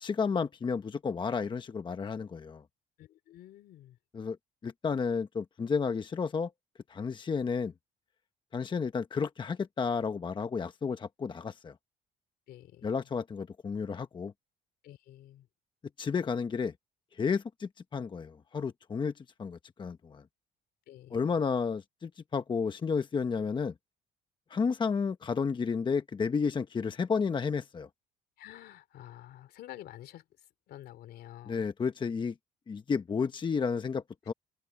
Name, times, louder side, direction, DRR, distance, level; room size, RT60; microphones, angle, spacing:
voice 1, 0.0-2.6 4.1-4.4 4.6-6.5 6.9-7.7 8.5-11.7 12.8-14.3 16.0-16.7 17.2-19.1 19.4-20.2 21.1-23.7 24.5-27.9 31.5-32.3 32.7-34.3, left 5 dB, 30° left, 1.0 m, -32 dB
voice 2, 3.0-4.0 12.5-12.9 14.8-15.5 20.9-21.3 28.4-30.2 30.7-31.7, left 13 dB, 70° left, 3.0 m, -49 dB
cardioid pair, 110°, 17 cm